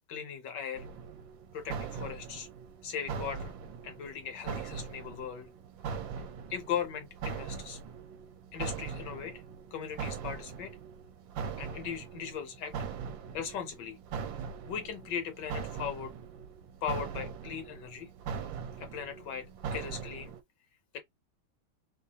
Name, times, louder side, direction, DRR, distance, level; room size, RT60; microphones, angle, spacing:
voice 1, 0.1-0.9 1.5-2.5 2.8-3.5 3.8-5.5 6.5-7.8 8.5-9.4 9.7-10.8 11.6-12.7 13.3-14.0 14.7-16.1 16.8-18.1 18.8-20.3 20.9-21.0, left 8 dB, 70° left, 1.2 m, -38 dB
sound 1, 0.7-20.4, right 6 dB, 75° right, 1.3 m, -41 dB
3.3 x 3.2 x 2.7 m
omnidirectional pair, 2.1 m